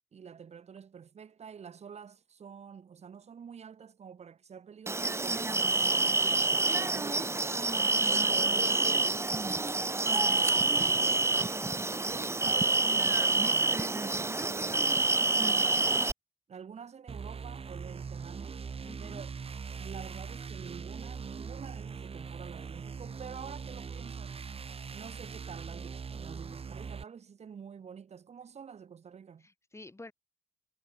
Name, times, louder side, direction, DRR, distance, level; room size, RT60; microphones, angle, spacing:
voice 1, 0.1-7.4 8.1-11.7 12.0-16.0 16.5-18.6 19.0-19.3 19.7-24.4 24.9-29.5, right 7 dB, 75° right, 4.9 m, -48 dB
sound 1, 4.9-16.1, right 3 dB, 25° right, 0.9 m, -27 dB
sound 2, 17.1-27.0, right 5 dB, 60° right, 5.3 m, -41 dB
voice 2, 18.8-19.2 26.1-26.2 29.4-30.1, left 2 dB, 25° left, 7.8 m, -50 dB
cardioid pair, 85°, 11 cm